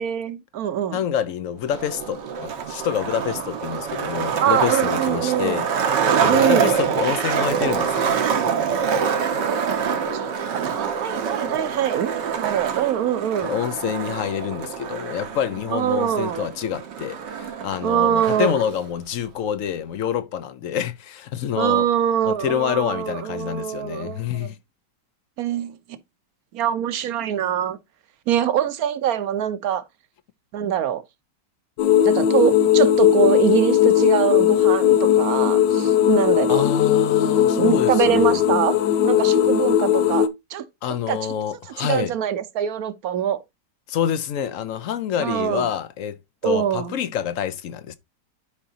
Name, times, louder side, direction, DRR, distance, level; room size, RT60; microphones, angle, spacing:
voice 1, 0.0-1.0 4.4-5.6 6.3-6.7 9.5-9.7 10.1-13.5 15.7-16.5 17.8-18.6 21.6-24.5 25.4-25.8 26.5-27.8 28.3-29.8 30.5-31.0 32.0-36.6 37.6-40.7 41.1-41.2 41.8-43.4 45.2-45.7 46.4-47.0, right 10 dB, 65° right, 1.2 m, -23 dB
voice 2, 0.9-5.7 6.0-8.5 13.4-21.9 22.2-24.6 36.5-38.4 40.8-42.1 43.9-46.2 46.4-48.0, left 9 dB, 65° left, 0.9 m, -27 dB
Skateboard, 1.7-18.7, right 6 dB, 80° right, 1.8 m, -25 dB
sound 1, 31.8-40.3, left 10 dB, 85° left, 1.4 m, -18 dB
11.5 x 5.1 x 2.8 m
omnidirectional pair, 1.9 m